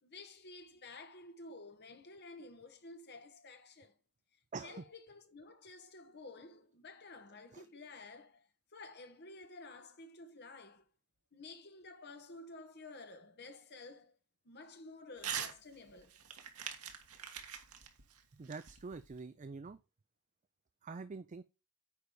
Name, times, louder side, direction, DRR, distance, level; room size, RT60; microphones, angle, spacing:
voice 1, 0.0-4.0 4.6-10.9 11.3-14.1 14.4-16.2, left 3 dB, 50° left, 1.3 m, -52 dB
voice 2, 4.5-4.8 7.5-7.6 18.4-19.8 20.8-21.4, right 4 dB, 35° right, 0.4 m, -45 dB
Crumpling crinkling / Tearing, 15.2-15.6 15.9-19.2, right 8 dB, 80° right, 1.5 m, -43 dB
9.4 x 4.0 x 4.9 m
head